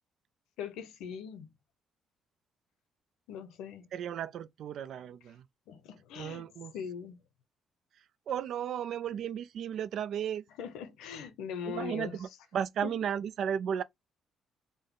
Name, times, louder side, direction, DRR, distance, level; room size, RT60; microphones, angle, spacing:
voice 1, 0.6-1.5 3.3-3.9 5.7-6.4 6.7-7.2 10.6-12.2 12.8-12.9, left 7 dB, 90° left, 0.7 m, -40 dB
voice 2, 3.9-5.4 6.2-6.7 8.3-10.4 11.6-13.8, right 9 dB, 65° right, 0.4 m, -34 dB
3.8 x 2.1 x 3.6 m
cardioid pair, 105°, 0 cm